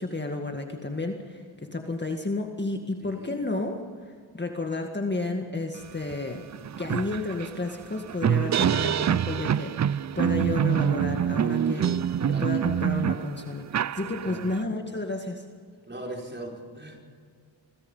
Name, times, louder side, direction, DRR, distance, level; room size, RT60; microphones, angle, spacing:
voice 1, 0.0-3.8 4.3-6.4 6.8-11.9 12.4-13.7 13.9-15.4, left 2 dB, 25° left, 3 dB, 1.9 m, -31 dB
voice 2, 3.0-3.4 11.8-12.7 14.2-14.5 15.9-17.0, right 1 dB, 25° right, 0 dB, 5.4 m, -39 dB
sound 1, 6.1-6.2 6.5-14.6, right 9 dB, 40° right, 0.4 m, -26 dB
26.5 x 20.0 x 5.6 m, 2.1 s
cardioid pair, 80°, 46 cm